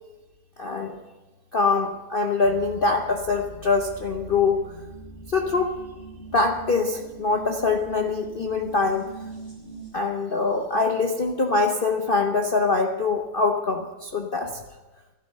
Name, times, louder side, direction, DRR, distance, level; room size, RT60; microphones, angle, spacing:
voice 1, 0.6-1.0 1.5-4.6 5.3-5.8 6.3-9.1 9.9-14.6, left 4 dB, 65° left, 4 dB, 0.5 m, -24 dB
sound 1, 2.4-9.9, right 2 dB, 25° left, 6.4 m, -41 dB
12.0 x 11.5 x 6.5 m, 1.1 s
omnidirectional pair, 2.1 m